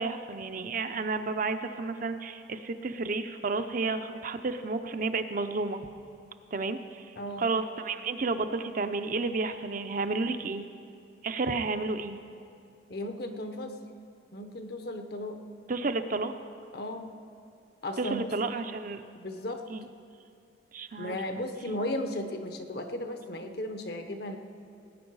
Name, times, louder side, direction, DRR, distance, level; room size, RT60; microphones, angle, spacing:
voice 1, 0.0-5.8 6.5-10.7 11.2-12.2 15.7-16.3 18.0-19.0 19.7-19.9 20.7-21.4, right 3 dB, 45° right, 8 dB, 0.6 m, -31 dB
voice 2, 7.2-7.5 12.9-13.7 14.3-15.4 16.7-17.1 17.8-18.3 19.1-19.6 21.0-24.4, left 1 dB, 60° left, 6 dB, 1.0 m, -35 dB
19.0 x 9.1 x 4.8 m, 2.6 s
head